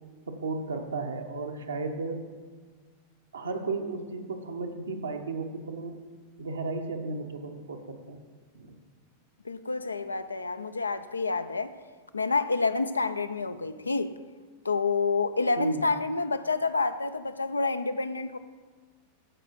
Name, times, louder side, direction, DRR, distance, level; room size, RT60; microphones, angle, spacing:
voice 1, 0.3-2.2 3.3-6.0 6.4-8.2 8.5-8.7 15.6-15.8, right 3 dB, 70° right, 1.0 m, -34 dB
voice 2, 9.4-11.7 12.1-14.1 14.6-18.4, left 3 dB, 80° left, 0.4 m, -28 dB
14.5 x 4.9 x 4.6 m
figure-of-eight pair, 90°, 0 cm